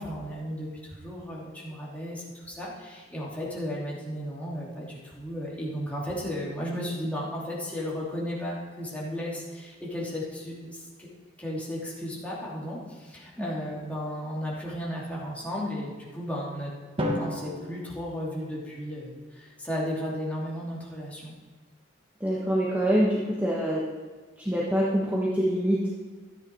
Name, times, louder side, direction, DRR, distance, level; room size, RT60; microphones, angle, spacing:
voice 1, 0.0-11.1 11.4-16.7 17.0-21.3, equal, 10° left, -6 dB, 2.8 m, -34 dB
Drum, 17.0-19.1, left 1 dB, 30° right, 1.3 m, -34 dB
voice 2, 22.2-23.8 24.4-25.9, equal, 10° right, -6 dB, 1.4 m, -25 dB
13.0 x 9.8 x 4.7 m, 1.4 s
head